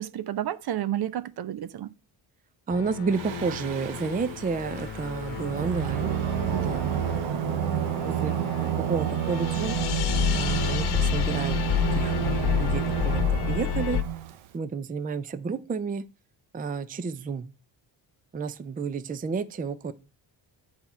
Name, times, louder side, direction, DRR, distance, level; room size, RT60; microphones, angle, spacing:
voice 1, 0.0-1.9, right 11 dB, 55° right, 0.7 m, -31 dB
sound 1, 2.7-14.0, left 10 dB, 55° left, 1.0 m, -30 dB
voice 2, 2.7-6.1 6.6-7.6 8.0-8.3 8.6-9.8 10.3-14.0 14.5-16.1 16.5-17.5 18.3-19.9, right 5 dB, 20° right, 0.5 m, -31 dB
Singing, 3.1-14.5, right 11 dB, 85° right, 0.9 m, -30 dB
9.3 x 4.4 x 5.4 m
cardioid pair, 120°, 45 cm